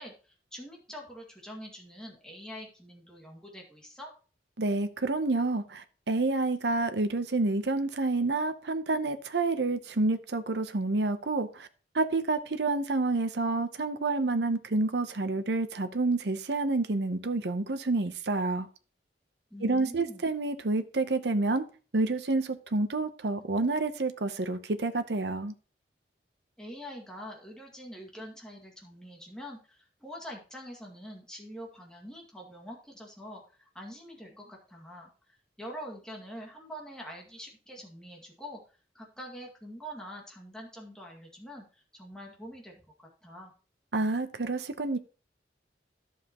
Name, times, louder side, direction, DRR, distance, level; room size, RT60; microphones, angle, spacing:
voice 1, 0.0-4.1 19.5-20.3 26.6-35.1 35.6-38.6 38.9-42.7 43.0-43.5, equal, 5° left, 2.1 m, -45 dB
voice 2, 4.6-11.7 11.9-18.7 19.6-21.6 21.9-25.5 43.9-45.0, right 3 dB, 70° right, 0.8 m, -28 dB
11.0 x 7.3 x 3.0 m
head